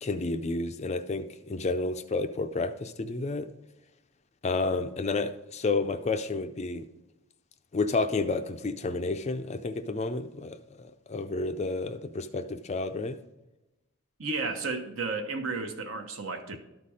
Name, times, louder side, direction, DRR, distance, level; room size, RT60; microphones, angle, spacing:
voice 1, 0.0-3.5 4.4-6.8 7.7-13.2, left 3 dB, 30° left, 9 dB, 0.4 m, -30 dB
voice 2, 14.2-16.6, right 3 dB, 65° right, 5 dB, 1.0 m, -33 dB
12.5 x 4.2 x 4.9 m, 0.97 s
head